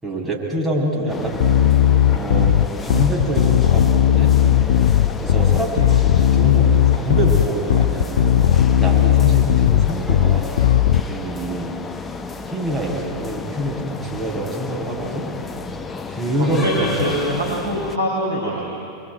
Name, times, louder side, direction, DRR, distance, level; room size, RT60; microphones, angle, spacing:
voice 1, 0.0-1.4 2.1-4.3 5.2-8.3 8.7-10.5 11.1-11.7 12.5-15.2 16.1-17.1, right 1 dB, 10° right, -3 dB, 6.3 m, -25 dB
sound 1, 1.1-18.0, left 4 dB, 15° left, 1.0 m, -33 dB
Bass guitar, 1.4-11.0, left 10 dB, 60° left, 0.6 m, -16 dB
voice 2, 16.4-18.7, equal, 85° right, -4 dB, 4.7 m, -24 dB
26.5 x 23.0 x 9.5 m, 2.5 s
figure-of-eight pair, 90°, 0 cm